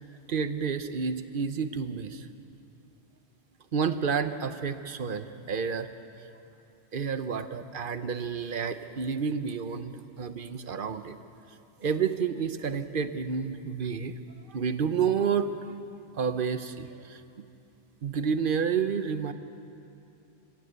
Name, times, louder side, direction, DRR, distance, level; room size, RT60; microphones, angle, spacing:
voice 1, 0.3-2.3 3.7-5.9 6.2-6.3 6.9-11.1 11.8-14.1 14.5-15.5 16.1-17.2 18.0-19.3, right 6 dB, 55° right, 10 dB, 1.0 m, -30 dB
25.5 x 15.5 x 8.1 m, 2.8 s
omnidirectional pair, 1.1 m